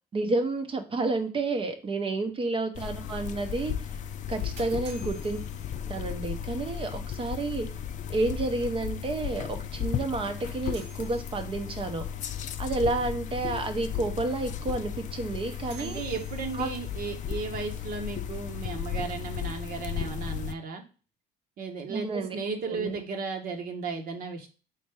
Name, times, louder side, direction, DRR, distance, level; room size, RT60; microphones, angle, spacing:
voice 1, 0.1-3.7 4.3-5.4 5.9-7.7 8.1-12.1 12.6-16.0 16.5-16.7 21.9-22.4 22.7-23.0, right 3 dB, 30° right, 6 dB, 0.7 m, -30 dB
sound 1, 2.7-20.5, left 9 dB, 45° left, 0.4 m, -35 dB
sound 2, 4.1-6.3 10.1-11.8 15.1-16.9, right 4 dB, 90° right, 2.0 m, -52 dB
voice 2, 15.8-20.8 21.6-24.5, right 4 dB, 60° right, 3 dB, 1.0 m, -35 dB
4.1 x 3.3 x 3.3 m, 0.35 s
cardioid pair, 110°, 17 cm